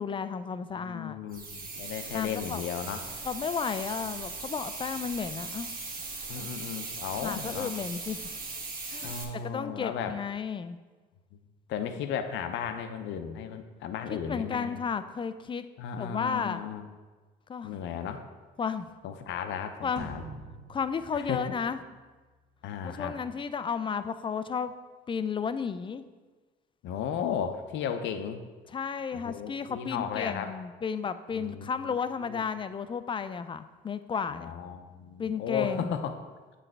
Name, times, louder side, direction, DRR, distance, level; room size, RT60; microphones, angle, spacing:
voice 1, 0.0-1.2 2.1-2.6 3.2-5.7 6.3-6.4 7.2-8.2 8.9-9.2 9.4-10.8 14.3-15.6 16.0-16.6 17.5-17.8 18.6-18.9 19.8-20.1 20.7-21.8 22.8-24.7 25.1-26.1 28.7-34.5 35.2-35.9, left 6 dB, 25° left, 12 dB, 0.4 m, -33 dB
voice 2, 0.7-3.1 4.0-4.2 6.3-7.8 9.0-10.2 11.7-14.8 15.8-16.8 17.6-18.2 19.0-20.2 21.1-21.4 22.6-23.2 26.8-28.4 29.1-30.5 31.3-32.4 34.2-36.2, left 8 dB, 70° left, 7 dB, 0.6 m, -35 dB
sound 1, 1.3-9.2, right 3 dB, 45° right, 1.2 m, -39 dB
sound 2, 20.0-22.4, right 2 dB, 65° right, 1.1 m, -45 dB
7.7 x 3.3 x 4.6 m, 1.3 s
supercardioid pair, 70°, 20 cm